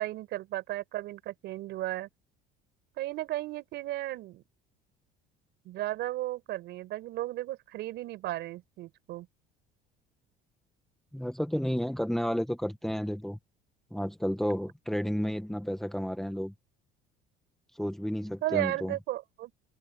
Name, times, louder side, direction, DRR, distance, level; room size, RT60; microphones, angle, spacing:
voice 1, 0.0-2.1 3.0-4.4 5.7-9.3 18.4-19.5, right 15 dB, 65° right, 5.2 m, -34 dB
voice 2, 11.1-13.4 13.9-16.5 17.7-18.9, equal, ahead, 1.7 m, -31 dB
supercardioid pair, 105°, 19 cm